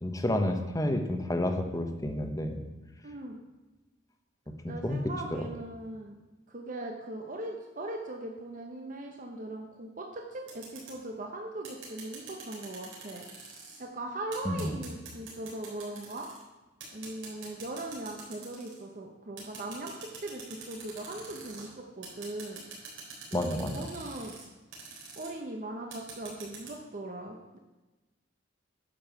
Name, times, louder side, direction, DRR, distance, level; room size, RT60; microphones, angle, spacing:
voice 1, 0.0-2.6 4.5-5.0 14.4-14.7 23.3-23.9, left 1 dB, 20° left, 6 dB, 0.9 m, -30 dB
voice 2, 3.0-3.4 4.7-6.2 6.5-13.2 13.8-16.3 16.9-22.6 23.3-24.4 25.2-27.6, right 2 dB, 40° right, 1 dB, 0.8 m, -40 dB
sound 1, 10.5-11.0 11.6-13.8 14.3-16.4 16.8-18.8 19.4-21.7 22.0-24.4 24.7-25.3 25.9-26.7, right 4 dB, 80° right, 3.7 m, -45 dB
10.5 x 5.5 x 6.9 m, 1.1 s
head